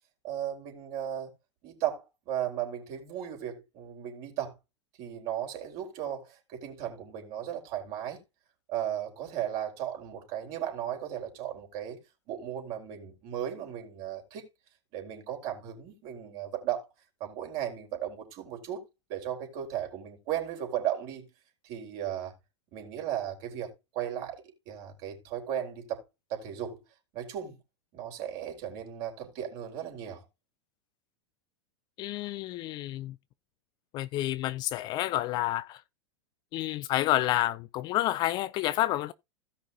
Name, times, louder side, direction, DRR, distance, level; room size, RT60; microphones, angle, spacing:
voice 1, 0.2-1.3 1.6-4.5 5.0-8.2 8.7-12.0 12.3-14.4 14.9-16.9 17.2-18.8 19.1-21.3 21.6-22.3 22.7-26.0 26.3-26.8 27.1-27.6 27.9-30.2, right 10 dB, 40° right, 4.1 m, -36 dB
voice 2, 32.0-33.1 33.9-35.8 36.5-39.1, left 15 dB, 30° left, 0.4 m, -29 dB
16.5 x 5.6 x 2.7 m
figure-of-eight pair, 90°, 15 cm